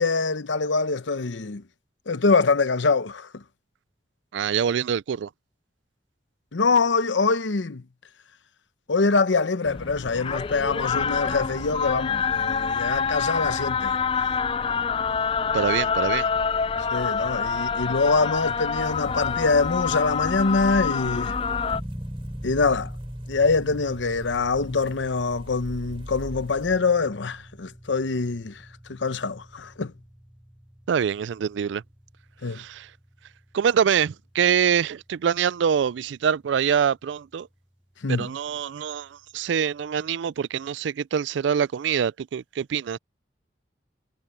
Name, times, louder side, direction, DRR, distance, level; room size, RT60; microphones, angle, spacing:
voice 1, 0.0-1.6 2.1-3.4 6.5-7.8 8.9-14.3 16.9-21.4 22.4-22.9 23.3-28.6 28.9-29.9 32.4-32.6 38.0-38.3, left 4 dB, 90° left, 0.8 m, -24 dB
voice 2, 4.3-5.3 15.4-16.3 30.9-31.8 32.5-32.9 33.5-37.5 38.1-43.0, right 7 dB, 80° right, 0.4 m, -25 dB
sound 1, 9.7-21.8, left 6 dB, 30° left, 0.3 m, -26 dB
sound 2, 18.8-26.8, equal, 30° right, 2.9 m, -41 dB
sound 3, 21.7-38.5, equal, 5° right, 1.0 m, -43 dB
head